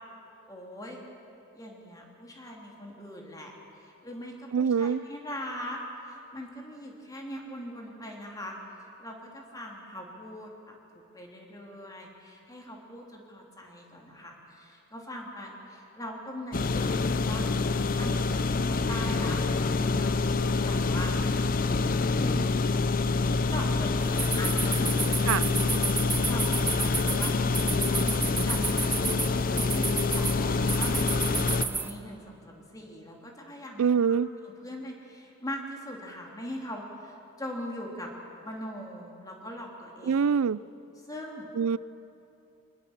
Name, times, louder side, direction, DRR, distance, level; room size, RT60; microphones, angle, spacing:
voice 1, 0.5-1.0 1.5-8.6 9.0-10.8 11.1-21.2 22.2-22.5 23.3-29.2 29.7-33.9 34.6-38.1 38.4-40.2 41.1-41.5, equal, 15° left, 0 dB, 3.0 m, -41 dB
voice 2, 4.5-5.0 25.3-25.5 33.8-34.3 40.1-40.6 41.6-41.8, right 6 dB, 85° right, 20 dB, 0.4 m, -24 dB
sound 1, 16.5-31.7, left 3 dB, 40° left, 0.6 m, -26 dB
sound 2, 24.0-31.9, right 4 dB, 10° right, 0.9 m, -32 dB
24.5 x 20.0 x 7.2 m, 2.8 s
head